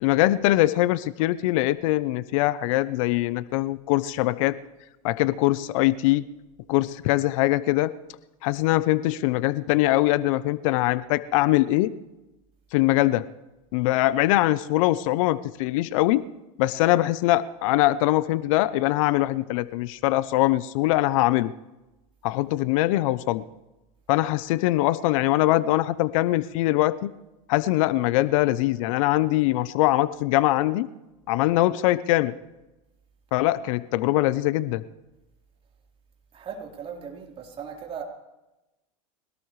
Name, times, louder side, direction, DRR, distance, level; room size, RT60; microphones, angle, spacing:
voice 1, 0.0-4.6 5.0-6.2 6.7-7.9 8.4-11.9 12.7-13.3 13.7-16.3 16.6-21.5 22.2-23.4 24.1-27.1 27.5-30.9 31.3-32.3 33.3-34.8, left 17 dB, 65° left, 16 dB, 0.7 m, -22 dB
voice 2, 36.3-38.0, right 7 dB, 30° right, -1 dB, 3.9 m, -38 dB
24.0 x 18.0 x 3.3 m, 1.0 s
supercardioid pair, 115°, 18 cm